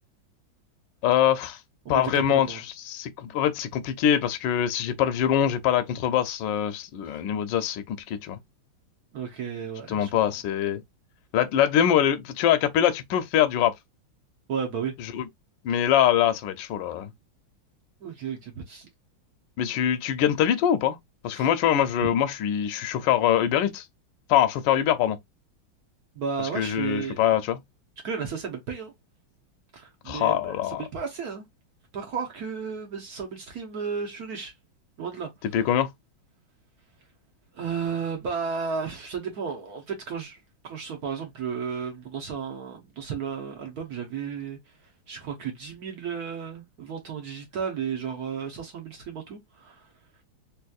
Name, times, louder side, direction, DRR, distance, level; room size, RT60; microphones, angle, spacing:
voice 1, 1.0-1.6 1.9-8.4 9.9-10.8 11.3-13.7 15.1-15.2 15.6-17.1 19.6-21.0 21.2-23.8 24.3-25.2 26.5-27.6 30.1-30.8 35.5-35.9, left 10 dB, 75° left, 1.2 m, -23 dB
voice 2, 1.8-2.6 9.1-10.1 14.5-14.9 15.7-15.8 18.0-18.9 21.3-21.5 26.2-27.2 28.0-28.9 29.7-30.6 30.9-31.4 31.9-34.5 35.0-35.3 37.5-40.4 40.6-44.6 45.1-49.8, right 6 dB, 55° right, 1.2 m, -33 dB
3.4 x 3.0 x 2.3 m
omnidirectional pair, 2.3 m